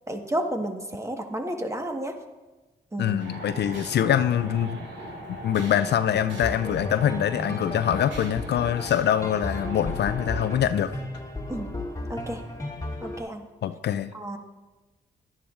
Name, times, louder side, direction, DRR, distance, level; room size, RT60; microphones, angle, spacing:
voice 1, 0.1-2.1 2.9-3.2 11.5-11.7 12.1-12.4 13.0-13.4 14.1-14.4, right 1 dB, 15° right, 4 dB, 1.4 m, -31 dB
voice 2, 3.0-4.9 5.4-11.0 13.6-14.1, left 10 dB, 60° left, 12 dB, 0.4 m, -24 dB
sound 1, 3.2-10.6, right 1 dB, 70° right, 2.0 m, -39 dB
sound 2, 6.4-13.2, left 2 dB, 15° left, 1.9 m, -35 dB
11.5 x 10.5 x 2.5 m, 1.2 s
supercardioid pair, 45°, 20 cm